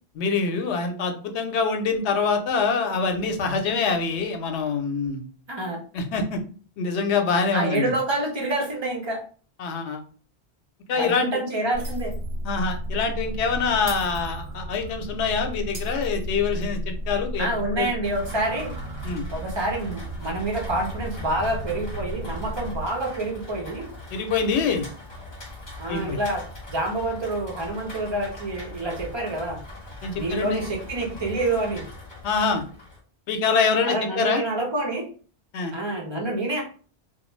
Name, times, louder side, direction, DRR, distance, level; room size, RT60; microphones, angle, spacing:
voice 1, 0.2-5.2 5.9-6.4 6.8-7.9 9.6-10.0 10.9-11.3 12.4-17.5 17.7-17.9 19.0-19.2 24.1-24.9 25.9-26.2 30.0-30.6 32.2-32.6 33.3-34.4 35.5-35.7, left 5 dB, 90° left, 5 dB, 0.9 m, -25 dB
voice 2, 5.5-5.8 7.5-9.2 10.9-12.1 17.4-18.7 19.3-23.9 25.8-29.6 30.1-31.8 33.9-35.1 35.7-36.6, right 2 dB, 30° right, 0 dB, 0.6 m, -27 dB
sound 1, 11.7-22.9, right 1 dB, 75° right, 0.8 m, -33 dB
Shatter, 11.8-12.4 12.7-12.9 13.9-14.9 15.7-16.8, right 3 dB, 45° right, 1.2 m, -42 dB
Rain, 18.0-33.0, left 1 dB, 45° left, 1.0 m, -41 dB
2.4 x 2.2 x 3.1 m, 0.41 s
omnidirectional pair, 1.1 m